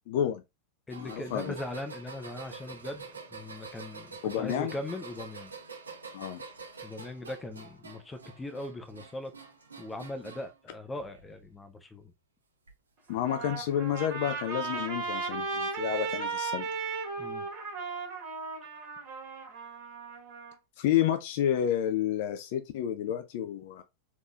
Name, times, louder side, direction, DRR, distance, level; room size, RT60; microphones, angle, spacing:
voice 1, 0.1-0.4 1.0-1.6 4.2-4.7 6.1-6.4 13.1-16.7 20.8-23.8, left 10 dB, 50° left, 0.4 m, -30 dB
voice 2, 0.9-3.1 3.3-5.5 6.8-9.3 9.8-12.1 17.2-17.5, left 2 dB, 10° left, 0.7 m, -40 dB
sound 1, 0.9-10.6 11.0-11.5 12.7-12.8 13.9-14.0, right 4 dB, 75° right, 0.9 m, -47 dB
Trumpet, 13.1-20.5, right 4 dB, 45° right, 1.8 m, -36 dB
3.6 x 3.0 x 2.4 m
figure-of-eight pair, 90°, 0 cm